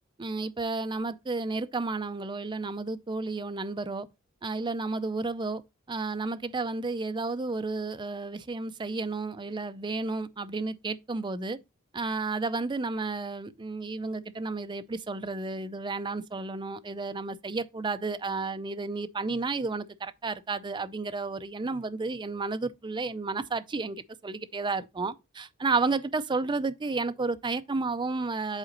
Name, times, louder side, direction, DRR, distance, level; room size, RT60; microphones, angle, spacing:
voice 1, 0.2-4.1 4.4-5.6 5.9-11.6 11.9-28.6, right 3 dB, 20° right, 0.5 m, -32 dB
8.1 x 4.0 x 3.9 m
head